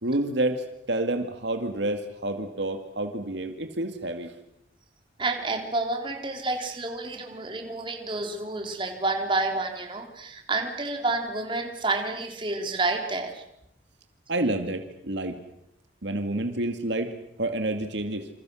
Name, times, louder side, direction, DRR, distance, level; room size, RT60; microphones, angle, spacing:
voice 1, 0.0-4.3 14.3-15.4 16.0-18.3, right 1 dB, 70° right, 7 dB, 2.1 m, -29 dB
voice 2, 5.2-13.4, right 3 dB, 25° right, 3 dB, 3.6 m, -29 dB
28.5 x 27.0 x 6.4 m, 0.78 s
head